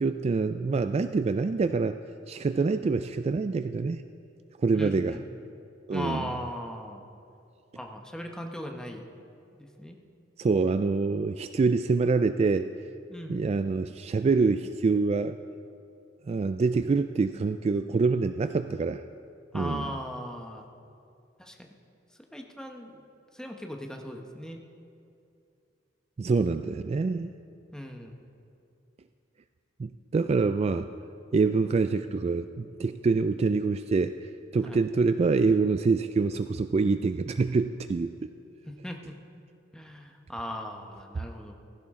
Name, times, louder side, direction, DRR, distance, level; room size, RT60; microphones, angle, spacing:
voice 1, 0.0-2.0 2.3-4.0 4.6-5.2 5.9-6.3 10.4-12.7 13.3-15.4 16.3-19.0 19.5-19.9 26.2-27.3 29.8-30.9 31.3-38.1, right 4 dB, 35° right, 10 dB, 0.3 m, -26 dB
voice 2, 2.6-3.0 4.7-5.2 5.9-7.0 7.7-9.1 9.6-10.0 13.1-13.4 19.5-20.7 21.4-21.7 22.3-23.0 23.3-24.6 27.7-28.1 34.6-34.8 38.7-39.2 39.7-41.5, equal, 5° left, 2 dB, 1.0 m, -38 dB
16.0 x 15.0 x 3.7 m, 2.6 s
head